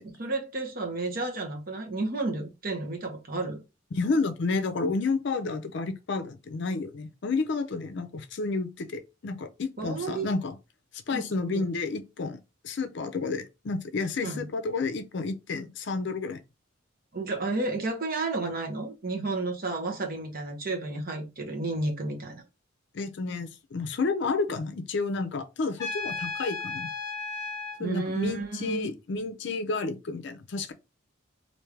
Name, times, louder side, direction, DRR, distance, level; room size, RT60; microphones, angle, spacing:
voice 1, 0.0-3.6 9.8-10.3 11.1-11.7 14.2-14.5 17.1-22.4 27.8-28.9, right 2 dB, 45° right, 1.0 m, -32 dB
voice 2, 3.9-10.6 11.1-16.4 22.9-26.9 27.8-30.7, left 3 dB, 60° left, 0.5 m, -31 dB
Trumpet, 25.8-27.8, left 4 dB, 20° left, 1.4 m, -34 dB
3.3 x 2.6 x 3.3 m
head